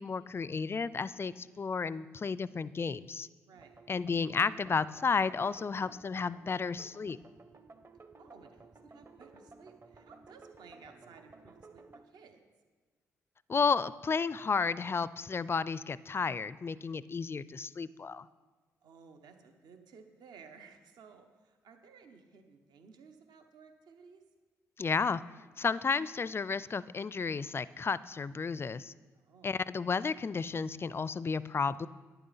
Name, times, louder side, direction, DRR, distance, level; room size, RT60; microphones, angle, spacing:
voice 1, 0.0-3.3 3.9-7.2 13.5-18.3 24.8-25.2 25.6-28.9 29.4-31.9, left 5 dB, 30° left, 18 dB, 0.4 m, -32 dB
sound 1, 3.5-12.0, right 3 dB, 35° right, 0.9 m, -56 dB
voice 2, 3.5-3.8 8.2-12.4 18.8-24.2 29.1-29.5, right 5 dB, 65° right, 6 dB, 1.0 m, -56 dB
11.0 x 9.3 x 4.1 m, 1.3 s
hypercardioid pair, 40°, 8 cm